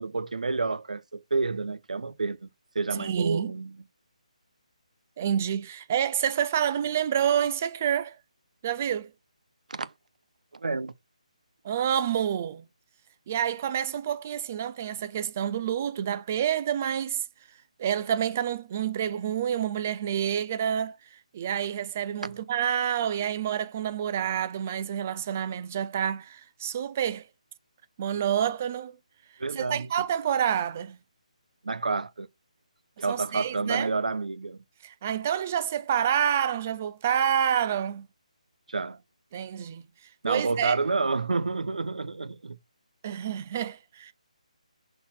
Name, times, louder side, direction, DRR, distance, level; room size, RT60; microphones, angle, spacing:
voice 1, 0.0-2.5 2.7-3.8 9.7-9.9 10.5-10.9 22.2-22.3 29.4-30.0 31.6-32.3 33.0-34.6 38.7-39.0 40.2-42.6, right 3 dB, 80° right, 0.9 m, -29 dB
voice 2, 3.0-3.5 5.2-8.2 8.6-9.1 11.6-12.6 13.3-17.2 17.8-27.3 28.0-29.0 29.6-31.0 33.0-33.9 34.8-38.1 39.3-39.8 40.3-40.8 43.0-44.1, right 9 dB, 15° right, 0.4 m, -28 dB
6.4 x 4.1 x 4.2 m
hypercardioid pair, 175°, 4 cm